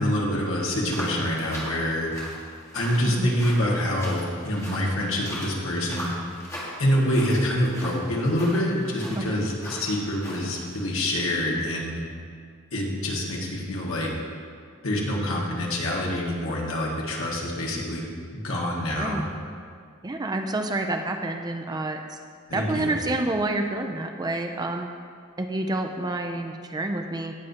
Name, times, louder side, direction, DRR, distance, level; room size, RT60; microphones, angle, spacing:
voice 1, 0.0-2.1 2.7-6.1 6.8-12.0 12.7-14.1 14.8-18.1 18.3-19.2 22.5-22.9, left 1 dB, 65° left, -3 dB, 1.8 m, -26 dB
sound 1, 0.8-10.8, equal, 15° left, 1.7 m, -40 dB
voice 2, 3.1-3.4 9.2-9.4 19.0-19.2 20.0-22.2 22.5-24.9 25.4-27.3, right 2 dB, 20° right, 5 dB, 0.4 m, -28 dB
17.5 x 6.5 x 2.8 m, 2.1 s
head